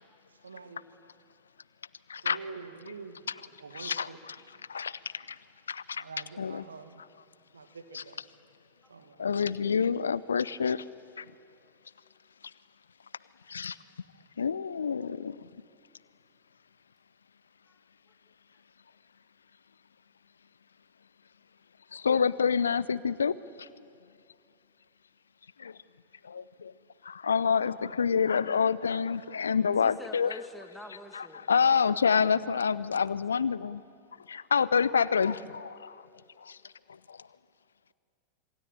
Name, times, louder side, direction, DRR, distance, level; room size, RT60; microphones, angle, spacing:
voice 1, 0.3-0.9 2.2-4.2 4.5-4.7 5.9-7.0 7.5-8.2 8.9-9.3, right 4 dB, 75° right, 7 dB, 2.1 m, -46 dB
voice 2, 3.7-4.1 4.7-5.4 5.7-6.0 6.4-6.6 7.9-8.0 9.2-10.8 11.2-11.3 13.5-13.8 14.4-15.5 21.9-23.8 25.6-25.8 26.2-26.7 27.0-30.4 31.1-33.8 34.3-36.1 36.4-37.3, left 6 dB, 70° left, 19 dB, 0.6 m, -28 dB
voice 3, 29.8-31.5, left 1 dB, 5° left, 5 dB, 2.4 m, -46 dB
27.0 x 23.5 x 9.0 m, 2.5 s
figure-of-eight pair, 90°, 0 cm